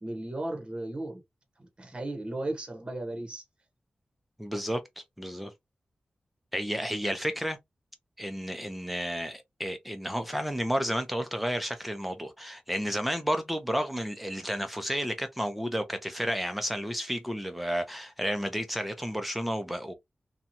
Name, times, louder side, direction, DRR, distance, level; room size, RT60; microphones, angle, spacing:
voice 1, 0.0-1.2 1.6-3.4, right 1 dB, 30° right, 1.0 m, -35 dB
voice 2, 4.4-5.5 6.5-7.6 8.2-19.9, equal, 5° right, 0.7 m, -32 dB
2.9 x 2.3 x 2.6 m
wide cardioid pair, 85°, 3 cm